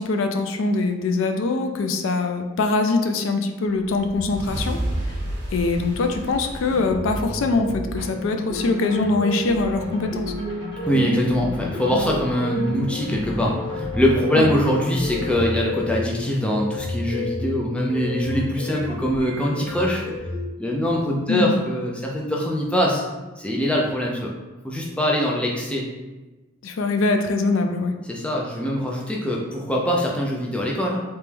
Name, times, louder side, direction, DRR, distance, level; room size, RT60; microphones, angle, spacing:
voice 1, 0.0-4.8 5.5-10.3 14.3-14.5 21.3-21.5 26.6-28.0, left 3 dB, 75° left, 6 dB, 0.4 m, -23 dB
sound 1, 3.8-8.3, right 1 dB, 55° right, 1.1 m, -31 dB
sound 2, 6.7-20.5, left 1 dB, 20° right, 0.9 m, -31 dB
sound 3, 8.5-15.5, equal, 20° left, 0.8 m, -38 dB
voice 2, 10.8-20.0 20.6-23.0 23.4-24.3 24.6-25.9 28.1-31.0, equal, 5° left, -2 dB, 0.4 m, -23 dB
3.3 x 3.0 x 3.3 m, 1.2 s
head